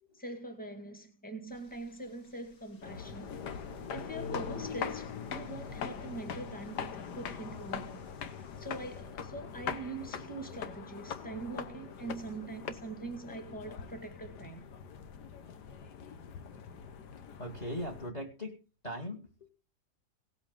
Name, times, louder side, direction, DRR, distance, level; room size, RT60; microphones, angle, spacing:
voice 1, 0.1-3.7 3.9-8.1 8.6-14.6, right 2 dB, 5° left, 1.9 m, -43 dB
sound 1, 1.5-9.0, left 2 dB, 55° left, 2.5 m, -64 dB
sound 2, 2.8-18.1, left 7 dB, 70° left, 1.6 m, -42 dB
voice 2, 17.4-18.6 18.8-19.5, equal, 25° left, 1.7 m, -39 dB
17.5 x 8.1 x 3.8 m
omnidirectional pair, 1.9 m